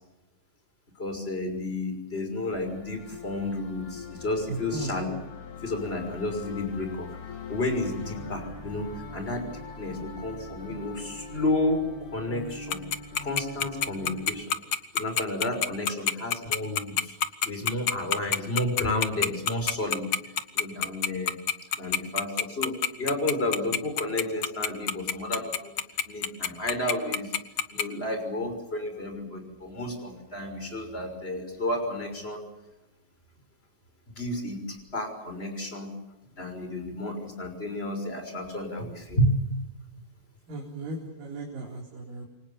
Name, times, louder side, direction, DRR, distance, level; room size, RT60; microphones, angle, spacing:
voice 1, 1.0-5.1 5.6-7.1 7.5-9.5 9.8-12.8 13.2-14.6 14.9-17.2 17.4-20.1 20.5-21.4 21.8-25.7 26.1-27.3 27.7-32.4 34.2-35.9 36.4-39.3, left 1 dB, 15° left, 6 dB, 6.0 m, -31 dB
sound 1, 2.5-14.5, left 4 dB, 85° left, 5.3 m, -42 dB
voice 2, 4.5-5.0 10.0-10.1 40.5-42.3, right 2 dB, 60° right, 0 dB, 5.5 m, -36 dB
Tick-tock, 12.7-27.8, left 8 dB, 65° left, 1.3 m, -25 dB
29.0 x 24.5 x 7.2 m, 0.98 s
omnidirectional pair, 4.4 m